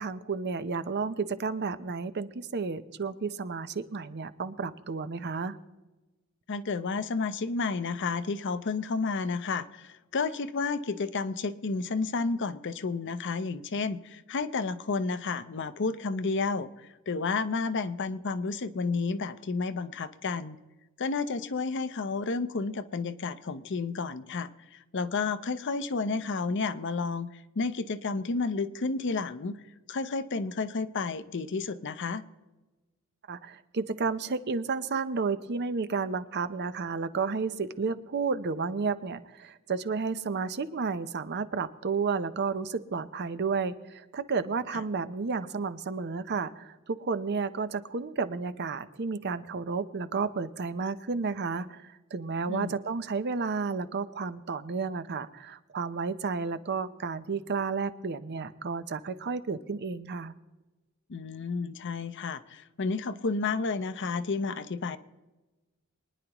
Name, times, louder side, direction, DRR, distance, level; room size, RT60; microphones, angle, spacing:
voice 1, 0.0-5.6 33.3-60.3, right 4 dB, 50° right, 13 dB, 0.6 m, -32 dB
voice 2, 6.5-20.6 21.0-29.6 29.9-32.2 52.5-52.7 61.1-65.0, left 4 dB, 55° left, 12 dB, 0.7 m, -31 dB
23.5 x 10.0 x 3.0 m, 1.1 s
head